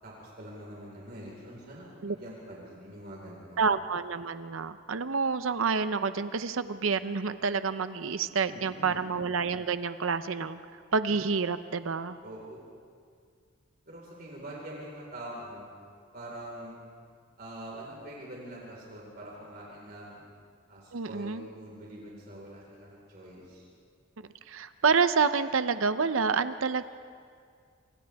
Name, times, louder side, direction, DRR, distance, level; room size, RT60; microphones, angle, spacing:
voice 1, 0.0-3.6 8.4-9.0 12.2-12.6 13.9-15.7 16.1-16.7 17.4-20.2 20.7-23.7, right 1 dB, 50° right, -4 dB, 4.6 m, -44 dB
voice 2, 3.6-10.6 10.9-12.2 20.9-21.4 24.5-26.8, right 5 dB, 80° right, 11 dB, 0.7 m, -28 dB
28.0 x 27.0 x 3.6 m, 2.1 s
head